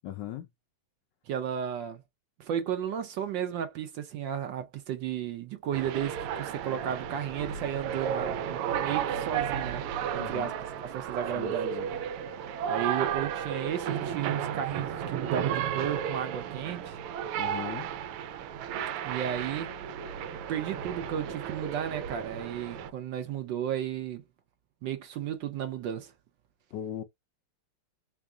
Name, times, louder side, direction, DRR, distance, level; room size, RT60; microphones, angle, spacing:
voice 1, 0.0-0.5 10.2-10.5 11.3-11.9 17.4-17.9 26.7-27.0, left 12 dB, 80° left, 1.0 m, -38 dB
voice 2, 1.3-2.0 2.4-9.9 10.1-11.8 12.7-17.0 19.0-19.7 20.5-24.2 24.8-26.1, right 9 dB, 70° right, 1.1 m, -34 dB
sound 1, 5.7-22.9, right 9 dB, 85° right, 1.5 m, -33 dB
3.6 x 3.6 x 2.2 m
omnidirectional pair, 2.4 m